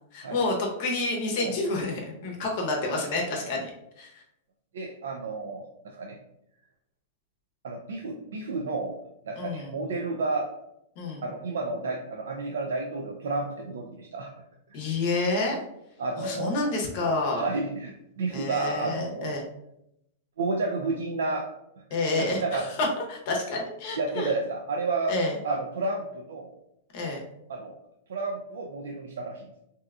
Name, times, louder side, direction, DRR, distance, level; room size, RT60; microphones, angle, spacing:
voice 1, 0.1-3.7 4.0-4.2 9.4-9.7 11.0-11.2 14.7-15.6 16.2-17.4 18.3-19.4 21.9-24.3 25.1-25.3 26.9-27.2, left 2 dB, 50° left, 0 dB, 0.7 m, -29 dB
voice 2, 4.7-6.2 7.6-9.0 9.3-10.5 11.2-14.3 16.0-16.6 17.3-19.4 20.4-21.5 22.2-22.7 24.0-25.1 25.4-26.5 27.5-27.7 28.1-29.5, right 3 dB, 90° right, 1 dB, 0.4 m, -31 dB
2.7 x 2.3 x 3.5 m, 0.81 s
supercardioid pair, 150°, 0 cm